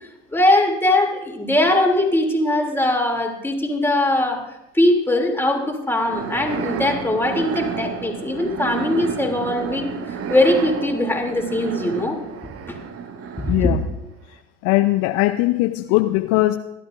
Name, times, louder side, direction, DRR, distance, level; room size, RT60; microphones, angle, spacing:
voice 1, 0.3-4.4 4.7-9.9 10.3-12.2 12.7-12.8 13.4-13.7, left 1 dB, 5° left, 1 dB, 3.0 m, -20 dB
sound 1, 5.9-13.9, right 6 dB, 45° right, 1.4 m, -31 dB
voice 2, 13.5-13.8 14.3-16.6, left 17 dB, 55° left, 7 dB, 0.7 m, -20 dB
30.0 x 12.5 x 2.6 m, 0.93 s
figure-of-eight pair, 70°, 33 cm